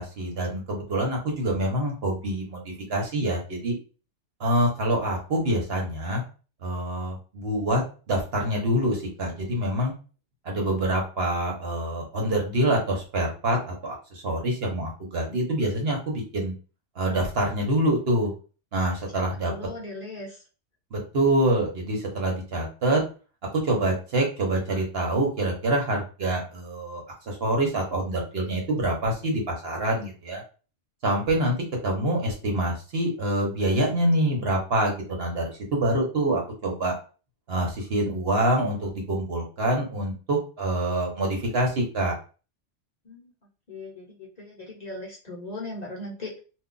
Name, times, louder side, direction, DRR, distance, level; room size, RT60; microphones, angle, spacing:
voice 1, 0.0-3.7 4.4-6.2 6.6-9.9 10.4-16.5 17.0-18.3 18.7-19.5 20.9-23.0 23.5-30.4 31.0-31.6 31.8-36.9 37.5-42.2, right 1 dB, 60° right, 0 dB, 1.0 m, -26 dB
voice 2, 19.5-20.4 43.0-43.3 43.7-46.4, left 2 dB, 40° left, -3 dB, 0.7 m, -38 dB
2.4 x 2.2 x 3.8 m, 0.36 s
omnidirectional pair, 1.2 m